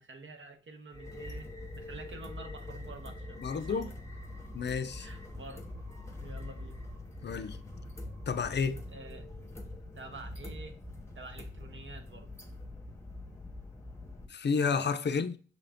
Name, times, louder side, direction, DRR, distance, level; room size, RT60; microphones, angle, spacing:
voice 1, 0.0-3.9 5.0-5.7 6.2-6.8 7.2-7.6 8.9-9.3 10.0-10.8 11.1-12.4, right 3 dB, 70° right, 0.8 m, -48 dB
sound 1, 0.9-14.3, left 2 dB, 15° left, 0.8 m, -44 dB
voice 2, 3.4-3.9 4.5-5.1 7.2-7.6 8.3-8.8 14.3-15.4, left 5 dB, 55° left, 0.4 m, -31 dB
6.2 x 2.5 x 3.4 m
wide cardioid pair, 105°, 21 cm